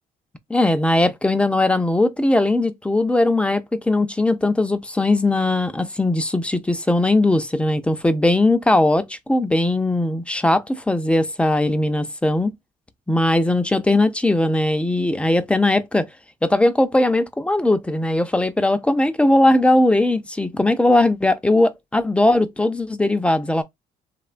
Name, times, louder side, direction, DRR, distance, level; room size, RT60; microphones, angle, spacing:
voice 1, 0.5-12.5 13.1-16.1 16.4-23.6, left 2 dB, 5° left, 0.3 m, -19 dB
2.9 x 2.1 x 2.4 m
cardioid pair, 110°, 17 cm